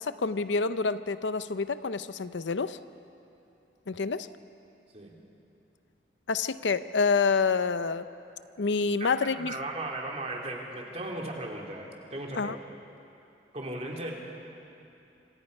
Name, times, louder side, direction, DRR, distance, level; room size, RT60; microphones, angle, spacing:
voice 1, 0.0-2.8 3.9-4.3 6.3-8.1 8.6-9.6 12.3-12.6, left 4 dB, 85° left, 13 dB, 0.7 m, -27 dB
voice 2, 9.0-12.6 13.5-14.1, right 2 dB, 35° right, -1 dB, 3.1 m, -37 dB
26.5 x 26.0 x 5.4 m, 2.8 s
head